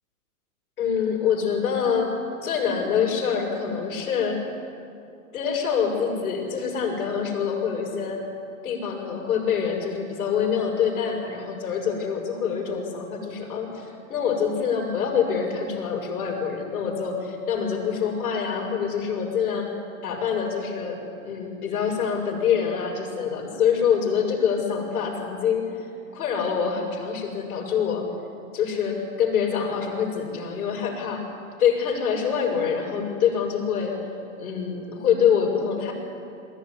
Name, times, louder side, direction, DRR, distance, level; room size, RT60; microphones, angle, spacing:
voice 1, 0.8-2.1 2.4-4.4 5.3-8.2 8.6-19.7 20.0-28.1 28.5-31.2 31.6-33.9 34.4-35.9, left 7 dB, 70° left, 1 dB, 6.9 m, -25 dB
22.5 x 15.5 x 9.8 m, 2.6 s
hypercardioid pair, 145°, 44 cm